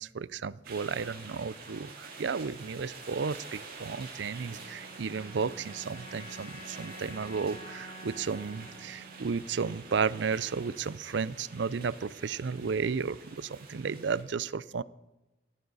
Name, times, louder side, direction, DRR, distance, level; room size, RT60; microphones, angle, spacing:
voice 1, 0.0-14.8, right 5 dB, 65° right, 19 dB, 0.5 m, -33 dB
sound 1, 0.6-14.2, right 4 dB, 50° right, 3.9 m, -47 dB
sound 2, 4.3-10.8, right 1 dB, 40° left, 3.0 m, -49 dB
17.5 x 14.0 x 4.1 m, 1.1 s
head